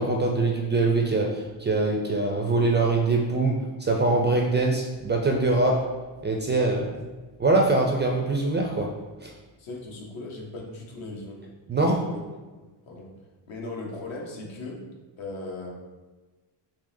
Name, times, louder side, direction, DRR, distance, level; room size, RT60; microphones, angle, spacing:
voice 1, 0.0-5.8 6.2-7.1 7.4-8.9 9.2-9.3 11.7-12.0, right 2 dB, 25° right, 0 dB, 0.3 m, -23 dB
voice 2, 9.6-11.5 12.1-12.2 12.8-13.1 13.5-14.8 15.2-15.7, left 2 dB, 70° left, -1 dB, 0.9 m, -37 dB
3.7 x 2.8 x 2.6 m, 1.2 s
cardioid pair, 90°, 48 cm